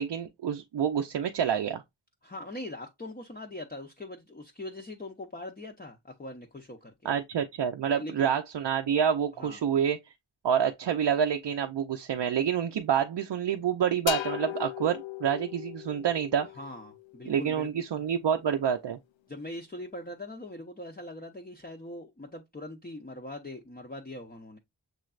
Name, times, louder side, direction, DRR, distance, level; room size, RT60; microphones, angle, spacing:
voice 1, 0.0-1.8 7.0-10.0 10.4-16.5 17.3-19.0, right 8 dB, 70° right, 0.6 m, -28 dB
voice 2, 2.2-6.9 7.8-8.3 9.4-9.7 16.5-17.7 19.3-24.6, left 1 dB, 20° left, 0.6 m, -41 dB
sound 1, 14.1-17.7, left 12 dB, 85° left, 0.6 m, -37 dB
6.7 x 3.2 x 2.4 m
wide cardioid pair, 105°, 44 cm